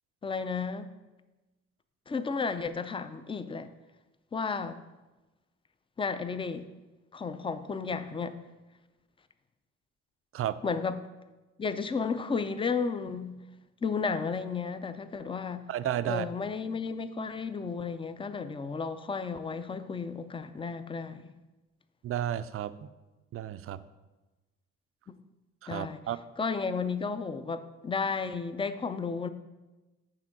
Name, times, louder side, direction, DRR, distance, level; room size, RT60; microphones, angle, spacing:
voice 1, 0.2-0.9 2.1-3.7 4.3-4.8 6.0-6.7 7.1-8.4 10.6-11.0 11.6-13.4 13.8-15.7 16.1-21.3 25.7-26.0 26.4-29.3, left 5 dB, 20° left, 0.4 m, -33 dB
voice 2, 15.7-16.3 22.0-22.9 23.3-23.8 25.6-26.2, right 11 dB, 50° right, 0.4 m, -32 dB
7.6 x 3.6 x 6.0 m
cardioid pair, 90°, 30 cm